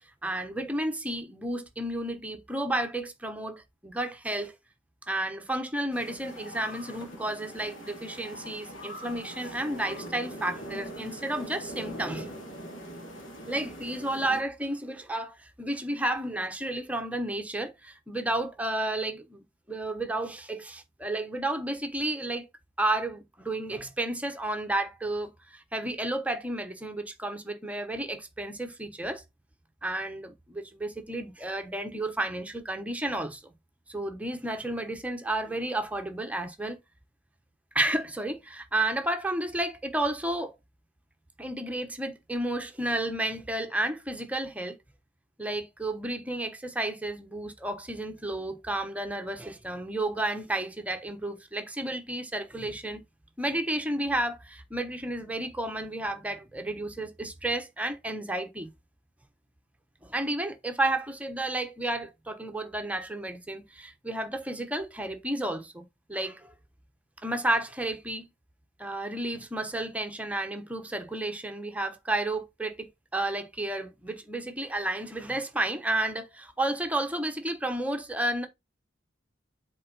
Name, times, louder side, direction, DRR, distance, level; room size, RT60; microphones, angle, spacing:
voice 1, 0.2-4.5 5.1-12.3 13.5-19.4 19.7-22.5 22.8-29.2 29.8-33.4 33.9-36.8 37.7-40.5 41.4-44.8 45.4-53.0 53.4-58.7 60.0-66.5 67.2-68.3 68.8-78.5, right 1 dB, 5° right, 1.0 m, -32 dB
sound 1, 5.9-14.4, equal, 80° left, 2.7 m, -42 dB
7.5 x 4.4 x 4.0 m
head